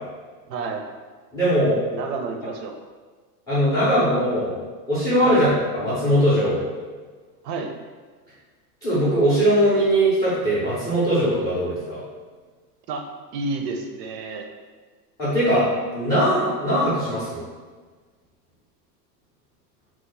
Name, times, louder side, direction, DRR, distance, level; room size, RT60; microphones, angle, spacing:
voice 1, 0.5-0.9 1.9-2.8 5.2-5.4 7.4-7.7 12.9-13.1 13.3-14.5, right 3 dB, 80° right, 4 dB, 0.6 m, -30 dB
voice 2, 1.3-1.8 3.5-4.5 4.9-5.5 5.7-6.6 8.8-12.0 15.2-15.7 15.9-17.4, equal, 10° left, -9 dB, 0.3 m, -20 dB
3.0 x 2.0 x 3.8 m, 1.4 s
supercardioid pair, 145°, 49 cm